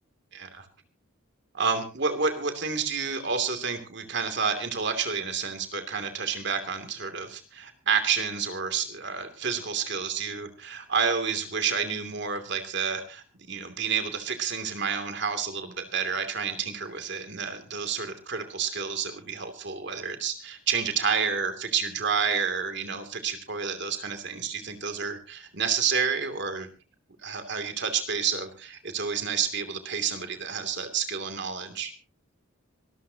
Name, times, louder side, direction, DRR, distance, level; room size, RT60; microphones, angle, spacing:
voice 1, 0.3-0.7 1.5-26.7 27.2-31.9, right 6 dB, 55° right, 7 dB, 2.7 m, -29 dB
26.0 x 13.5 x 2.9 m, 0.33 s
head